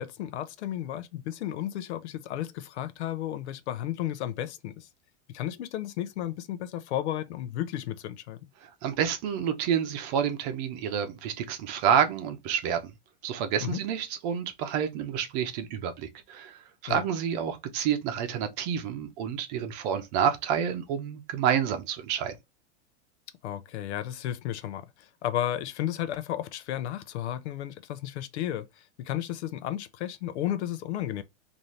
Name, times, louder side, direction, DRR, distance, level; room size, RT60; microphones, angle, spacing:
voice 1, 0.0-4.9 5.3-8.4 13.6-13.8 16.9-17.0 23.4-31.2, left 12 dB, 80° left, 0.7 m, -33 dB
voice 2, 8.6-12.9 13.2-22.4, right 8 dB, 40° right, 0.7 m, -29 dB
4.1 x 2.7 x 3.1 m
supercardioid pair, 165°, 33 cm